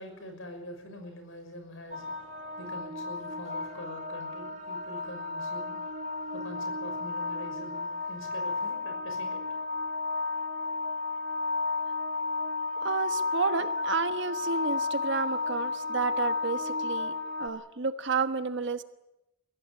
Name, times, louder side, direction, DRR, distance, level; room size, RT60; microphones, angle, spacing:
voice 1, 0.0-2.3 2.6-5.9 6.3-9.4, left 1 dB, 70° left, 6 dB, 6.2 m, -44 dB
sound 1, 1.9-17.5, left 3 dB, 35° right, 1.9 m, -33 dB
voice 2, 12.8-18.8, right 4 dB, 60° right, 9 dB, 1.3 m, -31 dB
23.0 x 16.5 x 9.8 m, 0.95 s
head